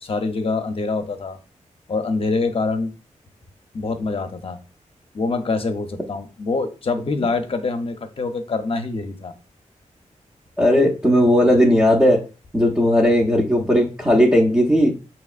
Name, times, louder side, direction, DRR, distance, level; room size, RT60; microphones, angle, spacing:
voice 1, 0.0-1.4 1.9-2.9 3.7-4.6 5.1-9.3, left 3 dB, 45° left, 7 dB, 0.7 m, -25 dB
voice 2, 10.6-12.2 12.5-14.9, equal, 10° right, -3 dB, 0.7 m, -16 dB
6.1 x 2.9 x 2.4 m, 0.33 s
wide cardioid pair, 105°, 13 cm